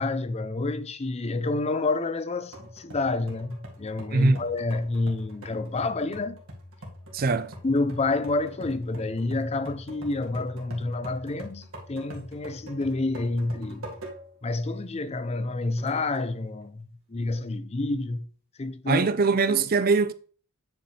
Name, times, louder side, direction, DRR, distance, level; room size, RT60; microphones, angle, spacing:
voice 1, 0.0-6.4 7.6-13.9 14.4-16.8 17.1-18.3 18.6-19.1, left 2 dB, 30° left, 0.5 m, -28 dB
sound 1, 2.5-14.5 14.9-15.0 15.8-16.4, equal, 70° right, 1.9 m, -44 dB
voice 2, 4.1-4.4 7.1-7.5 18.9-20.1, right 4 dB, 40° right, 0.5 m, -22 dB
9.0 x 5.1 x 3.2 m
head